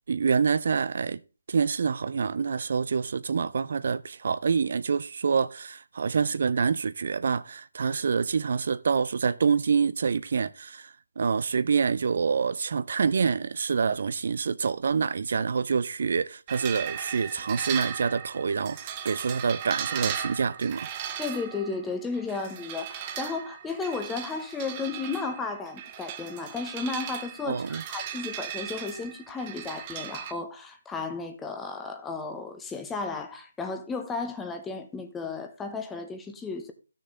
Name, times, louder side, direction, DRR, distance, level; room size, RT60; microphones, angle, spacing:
voice 1, 0.1-1.2 1.5-21.1 27.5-27.8, right 5 dB, 50° right, 0.4 m, -26 dB
sound 1, 16.5-30.3, right 9 dB, 20° right, 0.8 m, -37 dB
voice 2, 21.2-36.7, left 4 dB, 5° left, 0.8 m, -34 dB
13.0 x 6.5 x 3.8 m
figure-of-eight pair, 155°, 0 cm